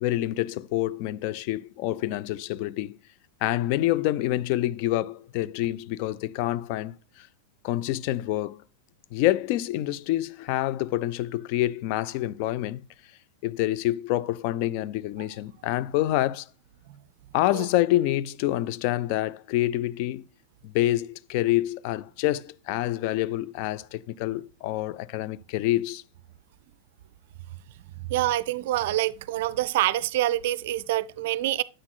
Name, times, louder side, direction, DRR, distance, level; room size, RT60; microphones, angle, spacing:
voice 1, 0.0-3.0 3.4-7.3 7.6-8.6 9.1-12.9 13.4-16.5 17.3-20.2 20.6-26.0, left 15 dB, 45° left, 0.3 m, -27 dB
voice 2, 28.1-31.6, right 15 dB, 50° right, 0.4 m, -26 dB
9.5 x 7.8 x 2.2 m
figure-of-eight pair, 90°, 0 cm